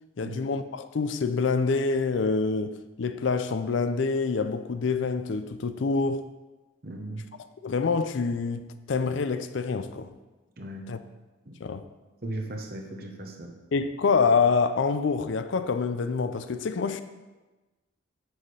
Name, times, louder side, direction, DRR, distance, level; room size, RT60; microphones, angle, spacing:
voice 1, 0.2-6.3 7.6-10.1 10.9-11.0 11.6-11.8 13.7-17.0, left 4 dB, 70° left, 0.4 m, -26 dB
voice 2, 6.8-7.2 10.6-10.9 11.5-11.6 12.2-13.5, right 1 dB, 50° right, 1.0 m, -37 dB
9.3 x 6.5 x 3.3 m
head